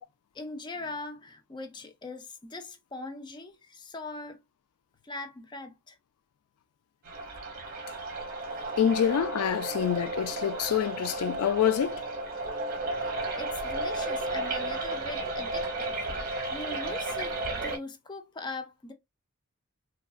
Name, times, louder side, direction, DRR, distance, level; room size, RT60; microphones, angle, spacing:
voice 1, 0.3-4.4 5.0-6.0 13.0-16.0 16.5-18.9, left 3 dB, 20° left, 0.4 m, -41 dB
sound 1, 7.1-17.8, right 2 dB, 40° right, 0.9 m, -33 dB
voice 2, 8.8-12.0, left 9 dB, 80° left, 0.3 m, -26 dB
3.6 x 2.3 x 2.3 m
head